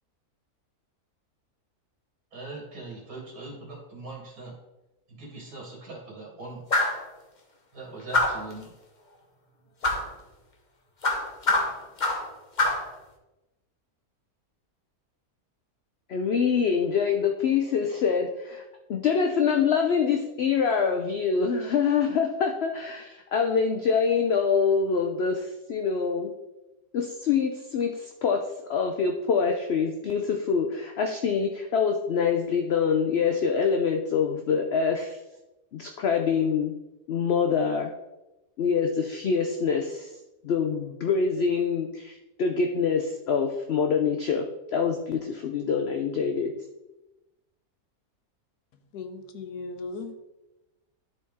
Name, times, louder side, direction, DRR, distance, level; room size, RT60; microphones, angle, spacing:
voice 1, 2.3-4.5 5.1-6.6 7.7-8.7, right 2 dB, 85° right, -2 dB, 2.1 m, -41 dB
sound 1, 6.7-7.0 8.1-8.5 9.8-10.1 11.0-12.3 12.6-12.9, left 2 dB, 35° left, 1.0 m, -24 dB
voice 2, 16.1-18.6 18.9-26.3 26.9-28.4 28.7-35.2 35.7-36.7 37.1-37.9 38.6-40.1 40.4-44.5 44.7-46.5, left 6 dB, 60° left, 3 dB, 0.7 m, -25 dB
voice 3, 48.9-50.2, left 3 dB, 85° left, 7 dB, 1.3 m, -37 dB
11.5 x 4.2 x 3.6 m, 1.0 s
omnidirectional pair, 1.6 m